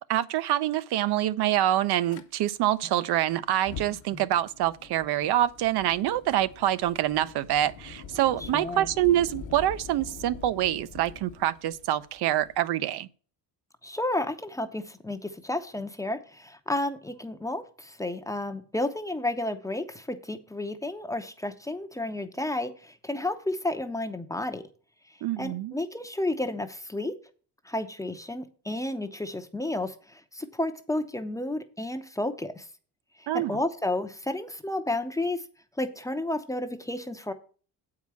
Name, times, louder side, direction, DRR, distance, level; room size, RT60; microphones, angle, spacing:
voice 1, 0.1-13.1 25.2-25.7 33.3-33.6, right 13 dB, 70° right, 0.7 m, -26 dB
Fire, 2.1-2.2 3.5-12.6, left 6 dB, 45° left, 1.0 m, -45 dB
voice 2, 8.5-8.9 13.8-24.6 25.4-27.1 27.7-32.6 33.3-35.4 35.8-37.3, left 1 dB, 10° left, 0.6 m, -32 dB
8.3 x 4.9 x 6.8 m
cardioid pair, 155°, 41 cm